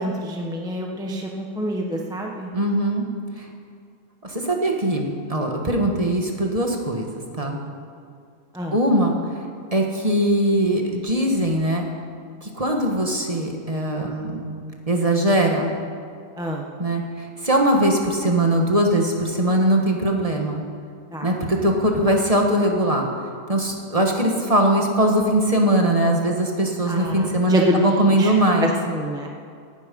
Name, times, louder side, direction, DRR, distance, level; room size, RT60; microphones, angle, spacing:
voice 1, 0.0-2.5 8.5-8.7 16.4-16.6 21.1-21.3 26.9-28.3 28.6-29.3, equal, 5° right, 0 dB, 1.0 m, -26 dB
voice 2, 2.5-3.1 3.4-3.5 4.2-7.1 7.4-7.6 8.7-9.2 9.7-11.8 12.4-14.5 14.9-15.7 16.8-20.6 21.2-23.1 23.5-28.7, right 1 dB, 25° right, 1 dB, 1.6 m, -21 dB
18.0 x 11.0 x 5.4 m, 2.3 s
omnidirectional pair, 1.7 m